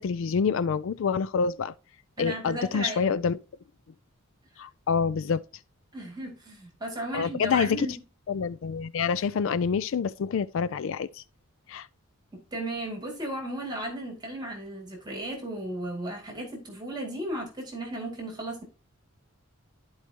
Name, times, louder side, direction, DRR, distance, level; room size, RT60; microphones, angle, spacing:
voice 1, 0.0-1.7 2.2-3.4 4.6-5.4 7.1-7.9 8.3-11.2 11.7-11.9, left 6 dB, 65° left, 0.4 m, -27 dB
voice 2, 2.2-3.2 4.5-4.6 5.9-7.9 12.3-18.6, right 1 dB, 20° right, 2.3 m, -35 dB
12.5 x 4.7 x 2.9 m
head